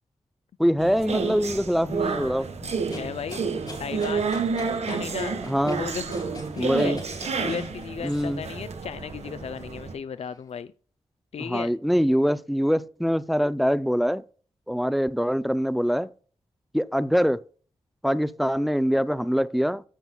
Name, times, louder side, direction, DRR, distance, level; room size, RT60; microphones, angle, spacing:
voice 1, 0.6-2.5 5.5-5.8 6.6-7.0 8.0-8.4 11.5-14.2 14.7-16.1 16.7-17.4 18.0-19.8, equal, ahead, 0.4 m, -24 dB
sound 1, 0.8-9.9, right 5 dB, 70° right, 1.5 m, -30 dB
voice 2, 2.6-4.4 4.8-5.4 5.8-6.1 6.5-7.0 7.4-10.7 11.3-11.7, left 7 dB, 65° left, 0.4 m, -35 dB
sound 2, 2.9-8.5 9.0-10.4, left 2 dB, 35° left, 3.5 m, -45 dB
14.0 x 6.0 x 2.3 m
cardioid pair, 70°, 11 cm